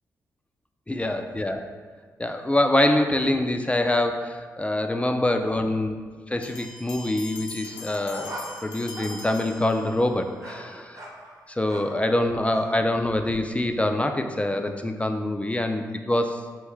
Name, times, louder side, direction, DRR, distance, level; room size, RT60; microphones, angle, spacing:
voice 1, 0.9-1.6 2.2-6.0 6.3-8.4 8.6-11.0 11.5-16.4, left 1 dB, 15° left, 6 dB, 0.4 m, -25 dB
sound 1, 6.4-10.2, left 3 dB, 80° left, 0.5 m, -42 dB
sound 2, 7.6-12.1 12.5-12.7, right 1 dB, 45° right, 1.0 m, -41 dB
4.5 x 3.1 x 3.5 m, 1.5 s
supercardioid pair, 45°, 8 cm